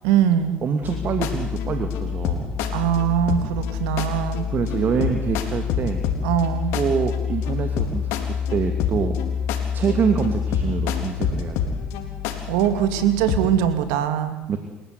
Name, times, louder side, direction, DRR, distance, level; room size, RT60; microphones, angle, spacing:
voice 1, 0.0-0.6 2.7-4.5 6.2-6.8 12.5-14.4, right 10 dB, 85° right, 10 dB, 2.6 m, -21 dB
voice 2, 0.6-2.5 4.5-6.0 6.7-9.2 9.7-11.7 14.5-14.6, right 6 dB, 45° right, 6 dB, 2.8 m, -25 dB
sound 1, 0.8-13.6, left 7 dB, 80° left, 3.9 m, -26 dB
29.0 x 16.5 x 9.8 m, 1.0 s
supercardioid pair, 85°, 5 cm